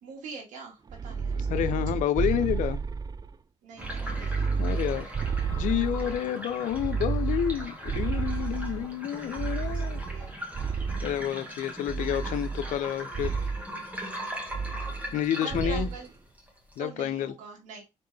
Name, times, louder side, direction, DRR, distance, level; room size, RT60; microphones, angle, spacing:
voice 1, 0.0-2.0 3.6-4.8 5.7-6.4 8.5-10.4 15.4-16.1 16.8-17.8, right 4 dB, 85° right, 1.9 m, -45 dB
sound 1, 0.9-3.3 3.8-6.2 6.7-8.9 9.4-11.2 11.9-12.8 13.1-13.6 14.5-15.2 15.5-16.0, right 5 dB, 30° right, 0.4 m, -31 dB
voice 2, 1.5-2.8 4.6-5.1 5.5-10.0 11.0-13.4 15.1-15.9 16.8-17.3, left 10 dB, 80° left, 0.5 m, -29 dB
sound 2, 3.8-16.8, equal, 10° right, 2.0 m, -40 dB
4.2 x 3.5 x 3.3 m
supercardioid pair, 65°, 13 cm